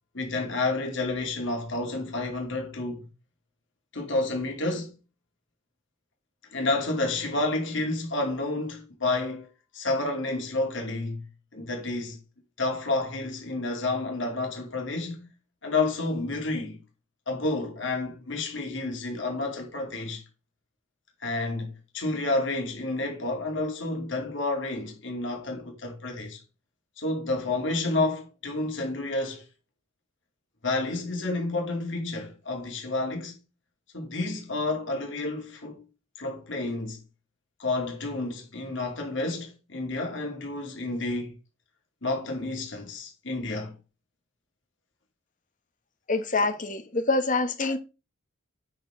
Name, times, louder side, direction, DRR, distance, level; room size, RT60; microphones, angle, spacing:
voice 1, 0.1-3.1 3.9-4.9 6.5-9.5 9.7-11.2 11.5-12.2 12.6-15.3 15.6-16.8 17.3-20.2 21.2-26.4 27.0-29.5 30.6-33.4 33.9-35.8 36.2-37.0 37.6-41.4 42.0-43.7, left 2 dB, 60° left, 2.5 m, -30 dB
voice 2, 46.1-47.8, left 3 dB, 40° left, 1.2 m, -25 dB
8.4 x 6.6 x 3.7 m
head